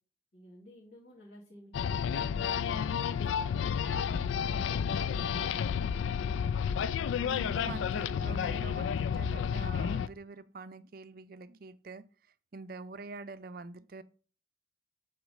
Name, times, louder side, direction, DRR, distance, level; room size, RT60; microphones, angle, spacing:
voice 1, 0.3-3.7 4.3-6.2, equal, 50° left, 2.4 m, -53 dB
sound 1, 1.7-10.1, left 7 dB, 80° left, 0.3 m, -31 dB
voice 2, 7.2-12.0 12.5-14.0, right 3 dB, 50° right, 0.5 m, -45 dB
8.0 x 3.0 x 6.3 m
head